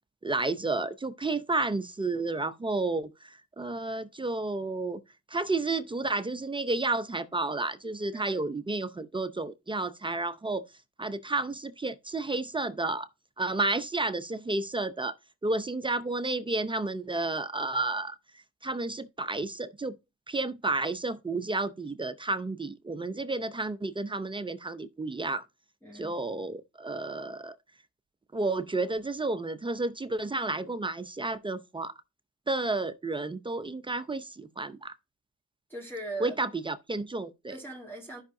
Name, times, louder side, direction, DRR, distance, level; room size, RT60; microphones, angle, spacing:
voice 1, 0.2-5.0 5.3-10.6 11.0-13.1 13.4-15.1 15.4-18.2 18.6-19.9 20.3-25.5 25.9-27.6 28.3-31.9 32.5-34.9 36.2-37.5, right 2 dB, 15° right, 0.6 m, -31 dB
voice 2, 25.8-26.2 35.7-36.4 37.5-38.2, right 2 dB, 5° left, 2.2 m, -40 dB
12.0 x 5.6 x 2.6 m
cardioid pair, 90°, 30 cm